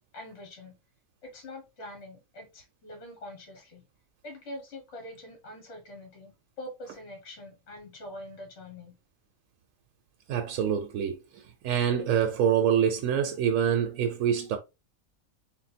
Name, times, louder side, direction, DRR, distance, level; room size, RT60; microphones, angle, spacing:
voice 1, 0.1-0.7 1.2-3.8 4.2-8.9, left 1 dB, 55° left, 1.6 m, -44 dB
voice 2, 10.3-14.6, right 8 dB, 80° right, 1.0 m, -26 dB
3.8 x 2.2 x 4.1 m
omnidirectional pair, 1.4 m